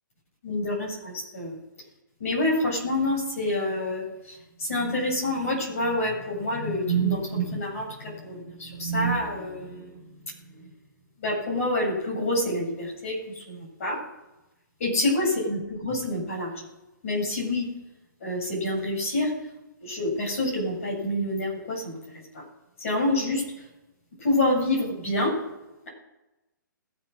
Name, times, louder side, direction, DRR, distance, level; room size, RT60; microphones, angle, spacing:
voice 1, 0.4-1.6 2.2-10.0 10.5-10.6 11.2-14.0 14.8-16.7 17.0-17.7 18.2-19.3 19.8-22.0 22.3-22.4 22.8-23.4 24.2-25.4, left 1 dB, 40° left, -3 dB, 7.5 m, -27 dB
21.5 x 8.2 x 6.5 m, 1.0 s
hypercardioid pair, 180°, 11 cm